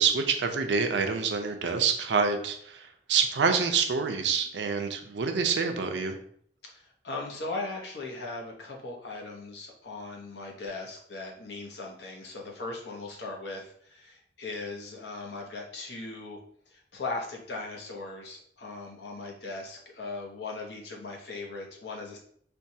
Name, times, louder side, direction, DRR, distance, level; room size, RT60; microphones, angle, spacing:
voice 1, 0.0-6.1, right 5 dB, 90° right, 6 dB, 0.5 m, -27 dB
voice 2, 6.6-16.4 16.7-22.2, left 3 dB, 70° left, 0 dB, 0.8 m, -38 dB
4.3 x 2.3 x 2.7 m, 0.64 s
head